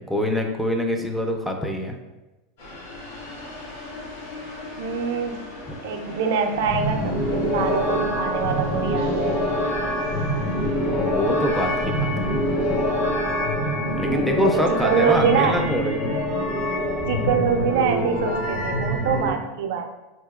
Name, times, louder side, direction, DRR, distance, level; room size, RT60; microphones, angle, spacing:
voice 1, 0.0-2.0 10.8-12.3 13.9-16.2, equal, ahead, 3 dB, 0.3 m, -25 dB
sound 1, 2.6-13.1, left 2 dB, 85° left, 1.0 m, -39 dB
voice 2, 4.8-5.5 5.8-9.6 14.1-15.6 17.1-19.8, right 6 dB, 70° right, 6 dB, 0.4 m, -24 dB
sound 2, 6.6-19.3, equal, 55° left, 1.0 m, -25 dB
3.9 x 2.8 x 2.3 m, 1.1 s
supercardioid pair, 155°, 0 cm